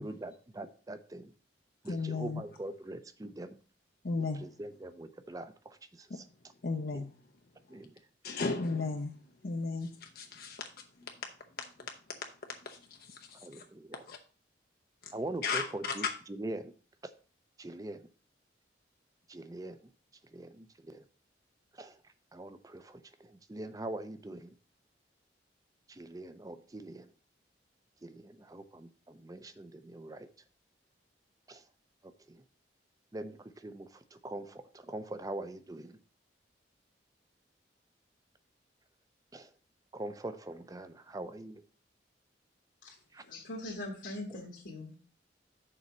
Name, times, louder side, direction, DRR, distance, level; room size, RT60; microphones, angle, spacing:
voice 1, 0.0-1.3 1.8-3.6 4.4-6.2 6.9-7.0 7.7-7.9 13.4-14.0 15.1-16.7 17.6-18.1 19.3-19.8 20.3-21.0 21.7-22.0 22.3-24.5 25.9-27.1 28.0-30.3 31.5-31.6 32.0-32.4 33.1-36.0 39.3-39.5 39.9-41.6 43.1-43.2, right 1 dB, 20° right, 0.5 m, -43 dB
voice 2, 1.9-2.4 4.0-4.4 6.1-6.2 6.6-7.1 8.2-9.1 9.4-10.6 12.7-12.8 13.1-13.2 14.1-14.2 15.4-16.1, left 4 dB, 55° left, 0.6 m, -34 dB
voice 3, 42.8-45.0, left 1 dB, 75° left, 1.5 m, -42 dB
6.7 x 4.2 x 5.9 m
head